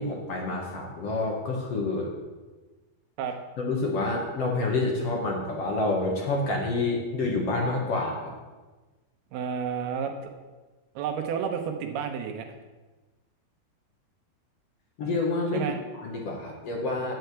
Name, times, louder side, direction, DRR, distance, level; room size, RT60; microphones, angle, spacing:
voice 1, 0.0-2.1 3.6-8.3 15.0-15.6 15.9-17.1, left 2 dB, 60° left, -1 dB, 1.6 m, -28 dB
voice 2, 9.3-10.1 11.0-12.5 15.5-15.8, right 7 dB, 85° right, 5 dB, 2.9 m, -30 dB
11.0 x 4.6 x 8.1 m, 1.2 s
omnidirectional pair, 4.4 m